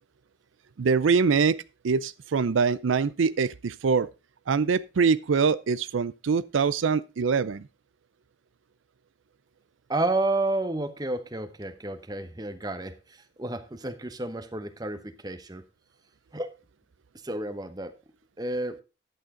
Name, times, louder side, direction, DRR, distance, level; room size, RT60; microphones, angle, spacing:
voice 1, 0.8-4.1 4.5-7.6, right 5 dB, 90° right, 0.5 m, -24 dB
voice 2, 9.9-15.6 16.3-16.6 17.2-17.9 18.4-18.8, right 2 dB, 20° right, 0.9 m, -31 dB
10.5 x 8.9 x 3.7 m
head